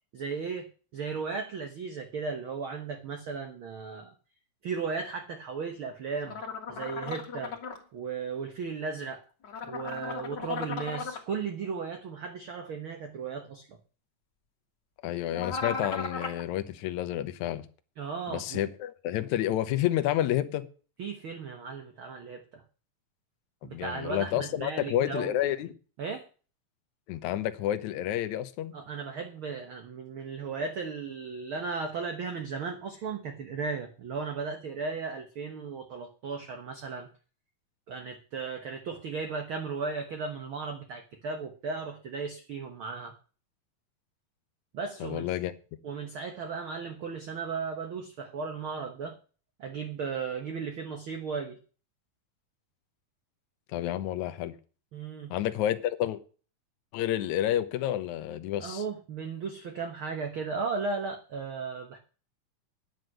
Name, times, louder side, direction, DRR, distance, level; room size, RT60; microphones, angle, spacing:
voice 1, 0.1-0.7 0.9-4.1 4.6-6.4 6.7-7.5 7.9-9.2 9.7-13.8 18.0-18.6 21.0-22.6 23.6-25.5 26.0-26.2 28.7-37.1 37.9-43.1 44.7-45.3 45.8-49.1 49.6-51.6 54.9-55.3 58.6-62.0, right 5 dB, 60° right, 1.4 m, -36 dB
sound 1, 6.3-7.8 9.4-11.2 15.3-16.4, left 5 dB, 40° left, 1.7 m, -36 dB
voice 2, 15.0-17.7 18.3-20.7 23.6-25.7 27.1-28.7 45.0-45.5 53.7-54.5 55.3-56.2 56.9-58.8, left 12 dB, 70° left, 2.0 m, -30 dB
9.5 x 9.2 x 6.5 m
omnidirectional pair, 4.0 m